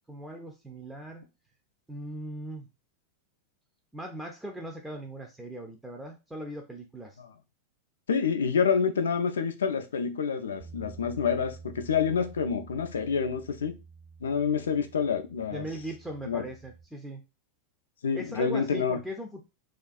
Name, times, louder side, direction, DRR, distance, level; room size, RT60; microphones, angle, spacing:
voice 1, 0.1-1.2 1.9-2.7 3.9-7.2 15.5-17.2 18.1-19.4, right 1 dB, 5° right, 2 dB, 0.4 m, -39 dB
voice 2, 8.1-13.8 14.2-15.6 16.2-16.5 18.0-19.0, left 6 dB, 65° left, 7 dB, 0.3 m, -28 dB
Bass guitar, 10.6-16.8, right 5 dB, 65° right, 0.9 m, -49 dB
2.4 x 2.2 x 2.4 m, 0.28 s
figure-of-eight pair, 90°, 0 cm